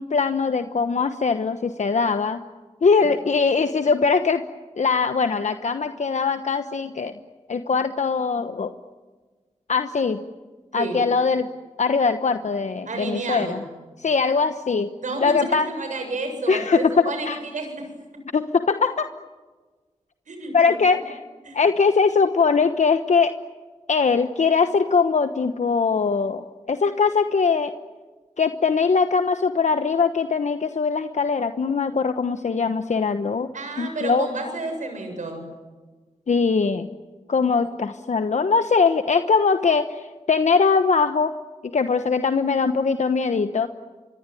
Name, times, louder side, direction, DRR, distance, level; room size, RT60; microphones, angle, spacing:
voice 1, 0.0-2.4 2.8-4.4 4.8-7.1 7.5-8.7 9.7-10.2 10.7-11.5 11.8-13.6 14.0-14.9 15.2-15.7 16.5-17.4 18.3-19.0 20.5-21.2 21.5-23.3 23.9-27.7 28.4-33.5 33.8-34.3 36.3-36.9 37.3-41.3 41.6-43.7, left 5 dB, 70° left, 8 dB, 1.1 m, -21 dB
voice 2, 12.9-13.6 15.0-17.9 20.3-21.0 21.4-21.6 33.5-35.4, right 2 dB, 85° right, 5 dB, 7.5 m, -31 dB
27.5 x 23.0 x 9.3 m, 1.4 s
cardioid pair, 40°, 13 cm